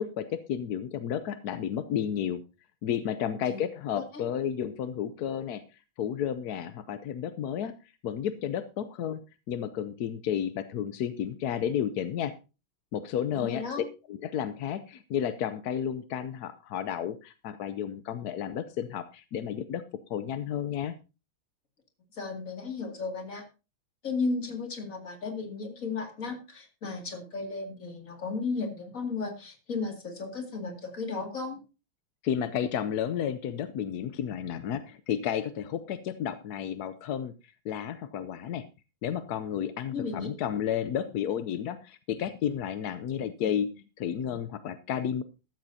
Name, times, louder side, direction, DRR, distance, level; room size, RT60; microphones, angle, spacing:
voice 1, 0.0-2.4 2.8-5.6 6.0-7.7 8.0-9.2 9.5-12.3 12.9-19.8 20.1-20.9 32.2-38.7 39.0-45.2, left 9 dB, 65° left, 11 dB, 1.0 m, -32 dB
voice 2, 13.3-13.8 22.1-23.4 24.0-31.6 39.9-40.3, left 4 dB, 40° left, 4 dB, 2.8 m, -34 dB
14.0 x 13.0 x 2.8 m, 0.30 s
omnidirectional pair, 2.3 m